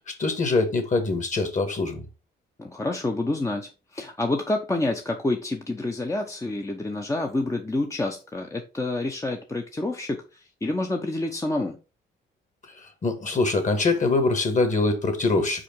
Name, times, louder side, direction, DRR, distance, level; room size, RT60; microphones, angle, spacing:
voice 1, 0.1-2.1 12.8-15.6, left 3 dB, 40° left, 1.9 m, -24 dB
voice 2, 2.6-11.8, left 2 dB, 15° left, 0.8 m, -28 dB
5.0 x 4.8 x 4.6 m
cardioid pair, 90°, 20 cm